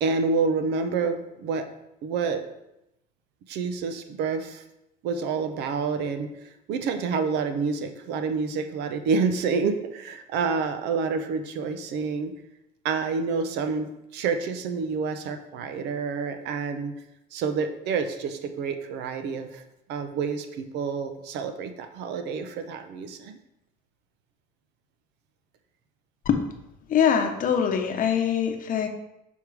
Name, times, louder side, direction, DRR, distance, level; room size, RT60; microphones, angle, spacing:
voice 1, 0.0-1.7 2.0-2.4 3.5-4.6 5.0-6.3 6.7-12.3 12.8-16.9 17.3-19.6 19.9-23.3, right 5 dB, 85° right, 8 dB, 0.7 m, -28 dB
voice 2, 26.9-28.9, left 8 dB, 55° left, 5 dB, 0.8 m, -23 dB
6.3 x 3.6 x 4.7 m, 0.87 s
cardioid pair, 110°, 17 cm